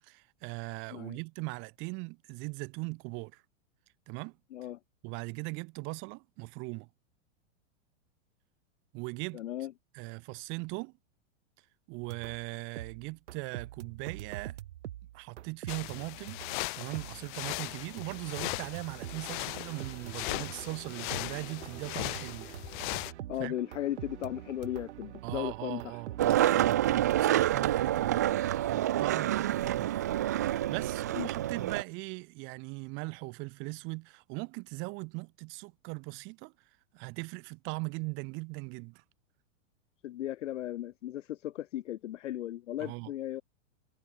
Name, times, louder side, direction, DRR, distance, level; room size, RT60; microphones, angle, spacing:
voice 1, 0.0-3.4 4.1-4.4 5.0-6.9 8.9-9.4 9.9-10.9 11.9-14.6 15.1-23.1 23.4-23.5 25.2-36.5 36.9-39.0 42.8-43.1, right 30 dB, 30° right, 3.7 m, -40 dB
voice 2, 9.3-9.7 23.3-26.0 31.2-31.3 40.0-43.4, left 13 dB, 70° left, 1.5 m, -36 dB
sound 1, 12.0-12.5 12.7-16.7 16.9-17.6 18.0-27.5, right 13 dB, 60° right, 4.9 m, -44 dB
sound 2, 15.7-23.1, left 25 dB, 40° left, 5.1 m, -38 dB
Skateboard, 26.2-31.8, right 13 dB, 15° right, 0.3 m, -28 dB
supercardioid pair, 170°, 38 cm